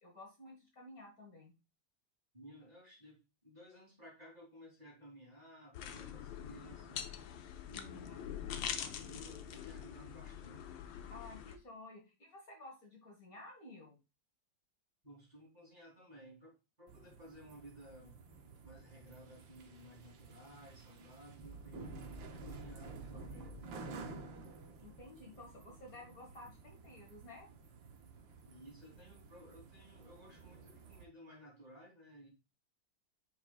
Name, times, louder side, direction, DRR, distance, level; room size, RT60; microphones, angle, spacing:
voice 1, 0.0-1.5 7.7-8.1 11.1-14.0 24.8-27.5, left 2 dB, 50° left, 0 dB, 2.0 m, -53 dB
voice 2, 2.3-7.1 7.7-8.2 8.8-10.7 15.0-18.2 18.6-22.0 22.4-23.8 28.4-32.3, equal, 20° right, -3 dB, 3.1 m, -57 dB
sound 1, 5.7-11.6, left 9 dB, 80° left, 1.5 m, -44 dB
sound 2, 16.9-31.0, right 3 dB, 85° right, 1.8 m, -52 dB
8.8 x 5.6 x 2.4 m, 0.27 s
omnidirectional pair, 2.0 m